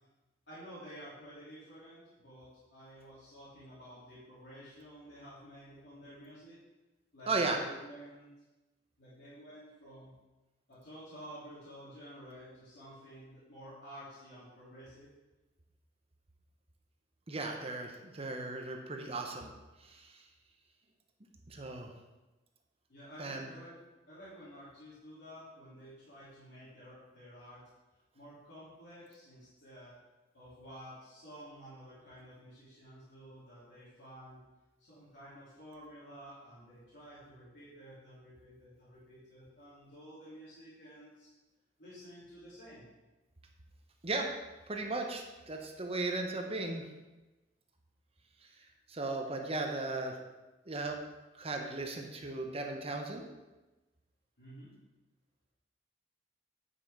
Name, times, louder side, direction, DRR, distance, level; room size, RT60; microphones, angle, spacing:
voice 1, 0.5-6.6 7.1-8.3 9.0-10.1 10.7-15.1 22.9-23.8 24.1-27.6 28.1-29.9 30.3-34.4 34.8-41.3 41.8-42.9 54.4-54.7, equal, 70° left, -11 dB, 3.1 m, -51 dB
voice 2, 7.3-7.6 17.3-19.5 19.8-20.1 21.5-21.9 23.2-23.5 44.0-44.3 44.7-46.8 48.9-50.2 50.7-51.0 51.4-53.2, right 3 dB, 35° right, 2 dB, 1.0 m, -36 dB
9.6 x 5.9 x 4.9 m, 1.1 s
head